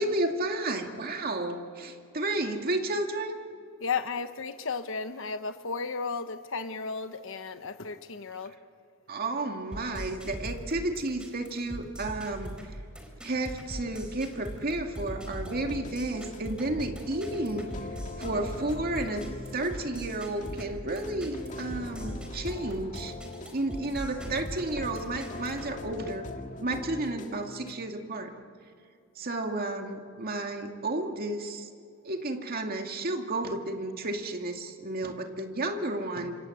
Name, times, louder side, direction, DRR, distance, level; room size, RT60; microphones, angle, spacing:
voice 1, 0.0-3.4 9.1-12.5 13.2-17.7 18.2-19.2 19.5-23.1 23.5-26.3 26.6-28.3 29.2-31.7 32.0-36.4, right 2 dB, 45° right, 4 dB, 2.2 m, -32 dB
voice 2, 3.8-8.5, left 5 dB, 65° left, 9 dB, 1.1 m, -34 dB
sound 1, 9.7-25.7, equal, 5° right, 4.3 m, -41 dB
sound 2, 15.4-27.8, left 2 dB, 35° left, 1.9 m, -42 dB
27.0 x 26.5 x 7.9 m, 2.5 s
head